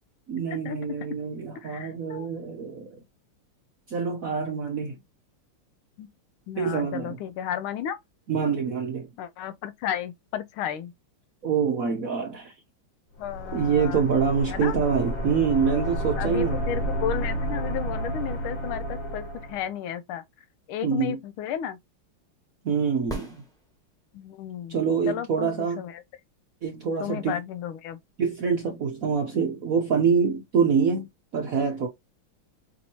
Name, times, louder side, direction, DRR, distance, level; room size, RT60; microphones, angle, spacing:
voice 1, 0.3-3.0 3.9-5.0 6.5-7.2 8.3-9.1 11.4-12.5 13.5-16.6 20.8-21.2 22.6-23.4 24.7-25.8 26.6-27.4 28.2-31.1 31.3-31.9, right 6 dB, 60° right, 1.0 m, -25 dB
voice 2, 1.5-2.3 6.0-6.1 6.5-8.0 9.2-10.9 13.2-14.1 14.5-14.8 16.2-20.2 20.7-21.8 24.1-24.8 25.1-26.0 27.0-28.0, left 9 dB, 80° left, 1.4 m, -33 dB
sound 1, 13.2-19.7, right 1 dB, 30° left, 1.2 m, -31 dB
sound 2, 23.1-24.2 28.1-28.2, right 2 dB, ahead, 0.9 m, -38 dB
5.4 x 2.7 x 2.8 m
omnidirectional pair, 2.3 m